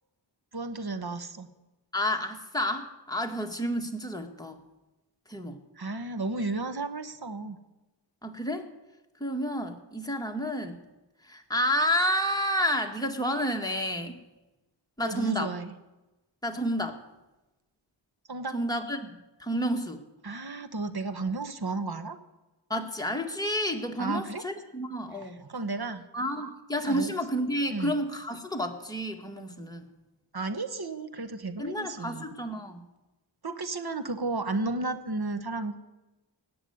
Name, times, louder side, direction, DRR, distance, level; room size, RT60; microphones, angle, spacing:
voice 1, 0.5-1.5 5.8-7.6 15.0-15.7 18.3-18.6 20.2-22.2 24.0-24.4 25.1-26.0 26.3-26.5 26.9-27.1 27.7-27.9 30.3-32.3 33.4-35.9, right 3 dB, 50° right, 10 dB, 1.3 m, -33 dB
voice 2, 1.9-4.6 5.3-5.6 8.2-8.7 9.2-10.8 11.2-14.2 15.0-15.5 16.4-17.0 18.5-20.0 22.7-25.4 26.1-29.9 31.6-32.8, equal, 10° left, 2 dB, 2.0 m, -30 dB
18.0 x 7.0 x 9.6 m, 1.0 s
wide cardioid pair, 45°, 47 cm